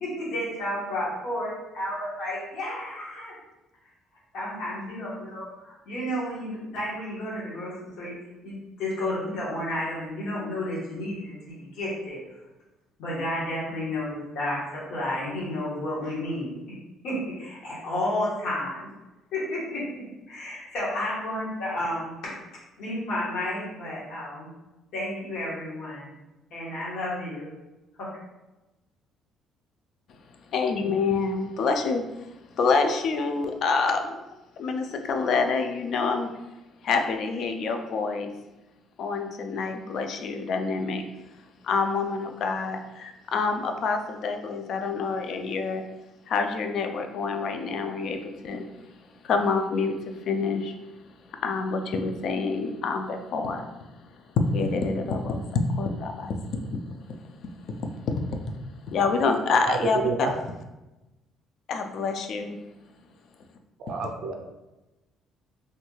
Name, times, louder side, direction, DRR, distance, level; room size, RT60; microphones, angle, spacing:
voice 1, 0.0-3.3 4.3-8.1 8.4-12.2 13.0-16.5 17.0-18.9 19.3-22.3 22.8-24.5 24.9-26.1 26.5-27.5 28.0-28.1, left 1 dB, 75° left, -7 dB, 1.2 m, -31 dB
voice 2, 30.5-34.1 34.6-36.3 36.8-38.3 39.0-41.0 41.6-45.8 46.3-48.6 49.2-50.7 51.4-53.7 54.4-56.8 57.1-57.2 57.8-58.4 58.9-60.3 61.7-62.6, left 4 dB, 55° left, 6 dB, 0.3 m, -27 dB
voice 3, 63.9-64.3, right 4 dB, 60° right, 3 dB, 0.4 m, -28 dB
3.2 x 2.3 x 3.1 m, 1.0 s
cardioid pair, 130°, 0 cm